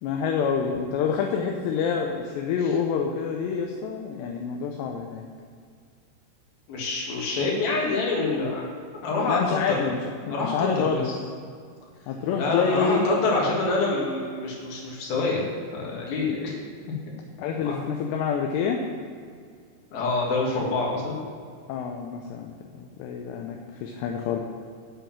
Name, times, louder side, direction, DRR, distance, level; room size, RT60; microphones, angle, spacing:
voice 1, 0.0-5.3 9.3-10.0 10.3-11.1 12.1-13.2 17.4-18.8 21.7-22.5 22.8-24.4, left 6 dB, 80° left, 2 dB, 2.9 m, -27 dB
voice 2, 6.7-8.7 9.0-9.6 10.2-11.1 12.4-15.4 15.7-16.5 17.5-17.8 19.9-21.2, left 3 dB, 60° left, -3 dB, 3.6 m, -26 dB
8.5 x 7.3 x 7.3 m, 2.1 s
omnidirectional pair, 5.0 m